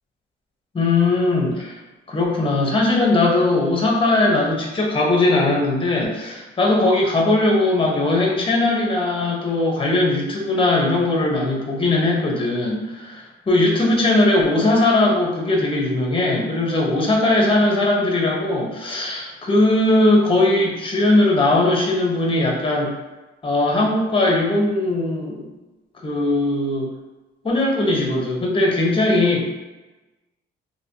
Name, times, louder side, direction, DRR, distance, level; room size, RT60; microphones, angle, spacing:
voice 1, 0.7-1.8 2.1-22.9 23.4-25.5 26.0-26.9 27.4-29.5, left 2 dB, 25° left, -1 dB, 1.0 m, -19 dB
3.1 x 2.8 x 2.8 m, 1.1 s
cardioid pair, 90°, 20 cm